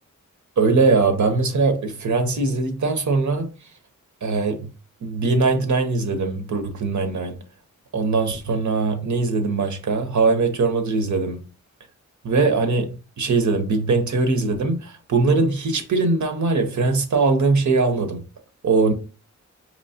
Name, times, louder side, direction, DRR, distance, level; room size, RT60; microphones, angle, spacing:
voice 1, 0.6-3.5 4.2-4.7 5.0-7.3 7.9-11.4 12.2-12.9 13.2-18.2 18.6-18.9, right 3 dB, 70° right, 0.8 m, -21 dB
4.3 x 3.0 x 2.7 m
wide cardioid pair, 80°, 30 cm